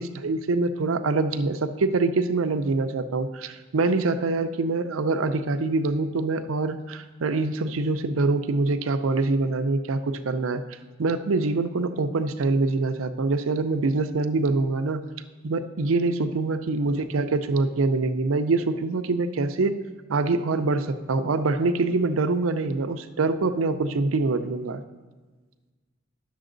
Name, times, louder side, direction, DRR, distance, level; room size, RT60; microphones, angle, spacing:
voice 1, 0.0-10.6 11.0-15.0 15.4-19.8 20.1-24.8, right 3 dB, 80° right, 10 dB, 0.5 m, -25 dB
10.0 x 6.9 x 3.9 m, 1.3 s
head